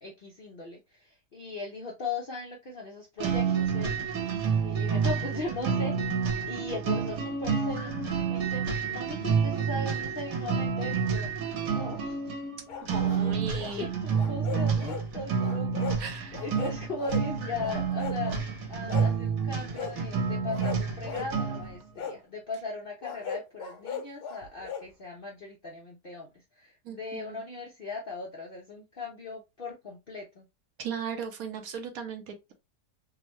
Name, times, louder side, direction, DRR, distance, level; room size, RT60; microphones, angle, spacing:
voice 1, 0.0-3.9 4.6-5.9 6.5-7.9 8.3-11.3 11.6-12.2 13.7-18.3 18.7-26.3 26.6-30.4, left 3 dB, 60° left, 0.6 m, -38 dB
sound 1, 3.2-21.7, right 6 dB, 90° right, 1.6 m, -29 dB
sound 2, 12.7-13.8 14.1-15.1 15.4-16.0 16.3-17.3 17.6-18.4 18.9-19.2 19.7-20.0 20.5-21.3 22.0-22.2 23.0-24.9, left 6 dB, 80° left, 1.2 m, -38 dB
voice 2, 12.9-13.9 16.0-16.4 26.8-27.4 30.8-32.5, right 6 dB, 70° right, 1.0 m, -37 dB
3.5 x 2.2 x 3.0 m
omnidirectional pair, 1.7 m